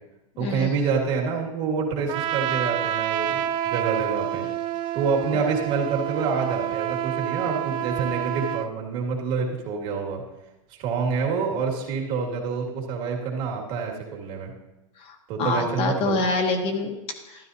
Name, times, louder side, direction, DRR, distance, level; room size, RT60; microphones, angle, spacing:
voice 1, 0.4-4.5 4.9-10.2 10.7-14.5 15.3-16.2, right 5 dB, 45° right, -1 dB, 2.4 m, -27 dB
Trumpet, 2.1-8.7, right 12 dB, 25° right, 0.4 m, -28 dB
voice 2, 15.0-17.5, left 3 dB, 30° left, 3 dB, 1.2 m, -27 dB
12.5 x 11.5 x 2.8 m, 1.0 s
supercardioid pair, 145°, 18 cm